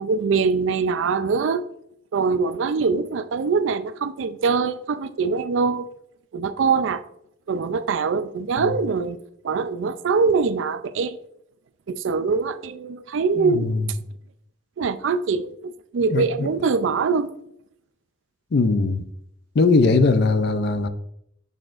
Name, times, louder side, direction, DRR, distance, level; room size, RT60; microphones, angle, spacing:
voice 1, 0.0-1.6 2.1-5.9 6.3-7.0 7.5-9.2 9.4-11.2 11.9-13.7 14.8-17.3, right 5 dB, 70° right, 0.4 m, -23 dB
voice 2, 13.4-13.8 16.1-16.5 18.5-19.0 19.6-20.9, left 3 dB, 60° left, 0.5 m, -20 dB
6.6 x 6.2 x 2.5 m
head